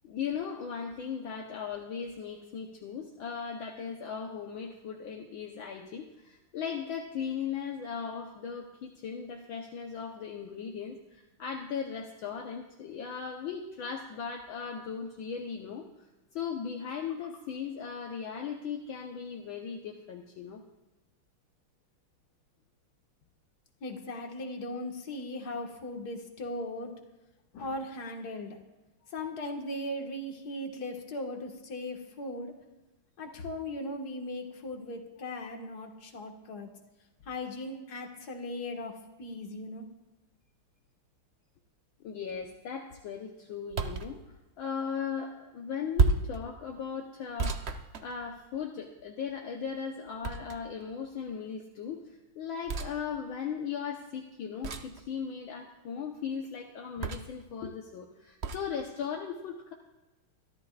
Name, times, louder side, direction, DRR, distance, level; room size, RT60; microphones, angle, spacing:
voice 1, 0.0-16.1 16.3-20.6 26.9-27.0 27.5-27.7 42.0-44.2 44.6-47.7 48.0-59.7, left 6 dB, 70° left, 1 dB, 1.7 m, -38 dB
voice 2, 23.8-26.9 27.6-28.6 29.1-32.5 33.2-36.7 37.3-39.9, left 1 dB, 50° left, 2 dB, 2.1 m, -38 dB
sound 1, 43.7-44.1 46.0-46.4 47.4-48.6 50.2-50.8 52.7-52.9 54.6-55.0 57.0-57.4 58.4-58.7, right 4 dB, 90° right, 0.5 m, -30 dB
24.5 x 13.0 x 2.4 m, 1.1 s
omnidirectional pair, 2.4 m